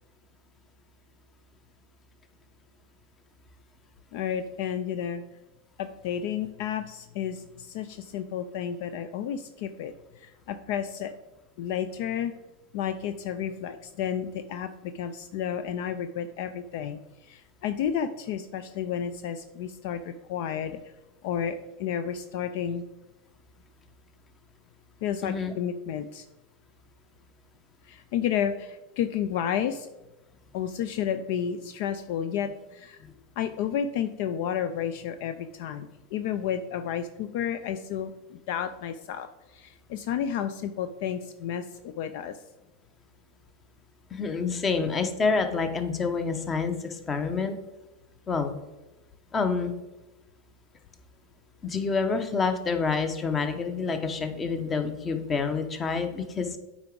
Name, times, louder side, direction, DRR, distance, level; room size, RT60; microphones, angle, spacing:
voice 1, 4.1-5.2 5.8-11.1 11.6-12.3 12.7-20.8 21.2-22.8 25.0-26.3 27.8-29.9 30.5-33.0 33.4-42.4, left 9 dB, 60° left, 9 dB, 0.4 m, -31 dB
voice 2, 25.2-25.5 44.1-47.6 48.3-48.5 49.3-49.7 51.6-56.6, left 4 dB, 25° left, 8 dB, 1.0 m, -28 dB
8.7 x 4.8 x 3.8 m, 1.0 s
hypercardioid pair, 95°, 0 cm